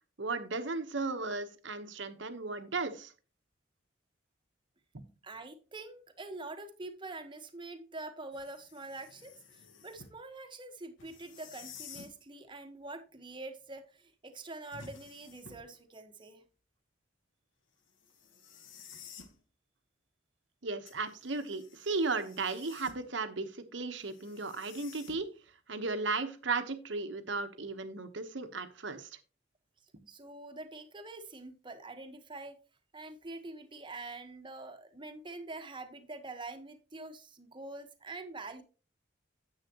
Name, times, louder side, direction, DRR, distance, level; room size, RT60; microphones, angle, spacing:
voice 1, 0.2-3.1 20.6-25.3 25.7-29.1, right 3 dB, 65° right, 1.1 m, -35 dB
voice 2, 5.2-16.4 30.1-32.6 32.9-38.6, right 2 dB, 25° right, 1.2 m, -45 dB
sound 1, 8.3-10.2 11.0-12.2 14.7-15.8 18.0-19.4 20.9-23.2 24.0-25.5, left 5 dB, 80° left, 1.3 m, -53 dB
9.9 x 8.3 x 3.0 m
head